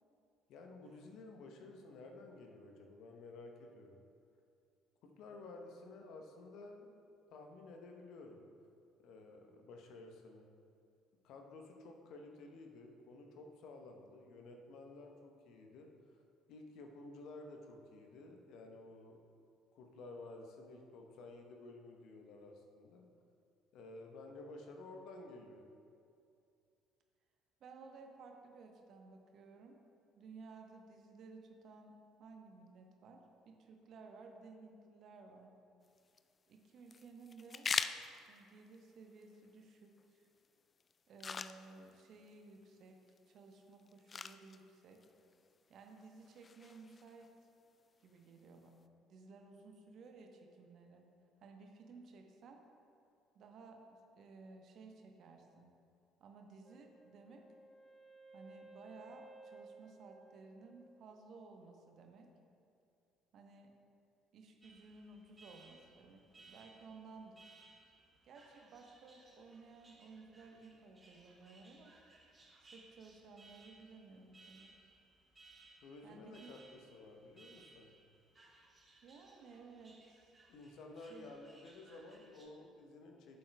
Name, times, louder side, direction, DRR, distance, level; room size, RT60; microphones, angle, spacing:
voice 1, 0.5-4.0 5.0-7.0 7.3-8.4 9.0-10.5 11.2-15.9 16.5-19.2 19.7-23.1 23.7-25.6 75.8-77.9 80.5-83.4, left 2 dB, 60° left, 3 dB, 0.9 m, -53 dB
voice 2, 27.6-29.8 30.1-35.5 36.5-37.7 38.3-40.3 41.1-43.0 43.3-45.0 45.7-47.3 48.0-48.8 49.1-51.1 51.4-52.6 53.3-55.7 56.2-57.4 58.3-62.3 63.3-63.7 64.3-67.5 68.2-72.0 72.6-74.7 76.0-76.5 79.0-80.3 81.1-81.3, right 4 dB, 50° right, 3 dB, 1.0 m, -56 dB
sound 1, 35.8-48.8, left 5 dB, 35° left, 0.3 m, -47 dB
Wind instrument woodwind instrument, 56.6-61.5, right 2 dB, 5° left, 0.9 m, -58 dB
Alarm, 64.6-82.5, right 3 dB, 25° right, 2.1 m, -64 dB
14.0 x 7.7 x 2.3 m, 2.5 s
figure-of-eight pair, 50°, 0 cm